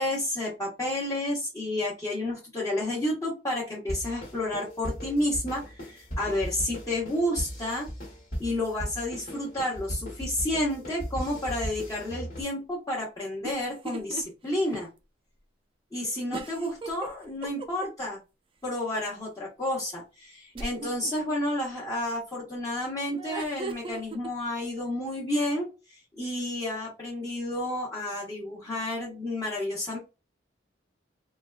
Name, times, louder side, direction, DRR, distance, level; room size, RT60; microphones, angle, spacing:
voice 1, 0.0-7.9 8.4-14.9 15.9-18.2 18.6-30.0, left 1 dB, 20° left, -8 dB, 1.0 m, -31 dB
sound 1, 3.9-12.4, equal, 50° left, 1.3 m, -37 dB
sound 2, 13.4-14.2 14.6-14.7 16.3-18.1 20.6-21.1 23.1-24.3, right 3 dB, 30° right, 0.4 m, -37 dB
3.8 x 2.2 x 2.3 m, 0.28 s
head